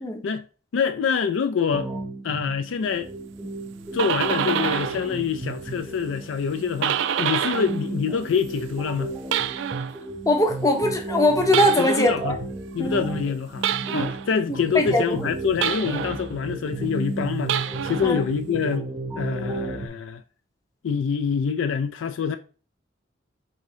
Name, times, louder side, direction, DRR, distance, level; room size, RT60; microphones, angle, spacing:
voice 1, 0.7-1.9 2.2-3.1 3.9-9.1 11.8-12.4 12.7-17.6 17.8-20.2 20.8-22.4, left 6 dB, 85° left, 0.4 m, -26 dB
sound 1, 1.7-19.9, right 2 dB, 25° right, 0.7 m, -34 dB
sound 2, 3.7-5.1 5.4-7.8 8.1-10.0 11.5-12.2 13.6-14.3 15.6-16.3 17.4-18.1, right 9 dB, 70° right, 0.3 m, -27 dB
voice 2, 10.3-12.3 12.8-13.0 13.9-14.1 14.7-15.0 18.0-18.2, left 1 dB, 20° left, 0.7 m, -21 dB
3.8 x 2.7 x 4.8 m
head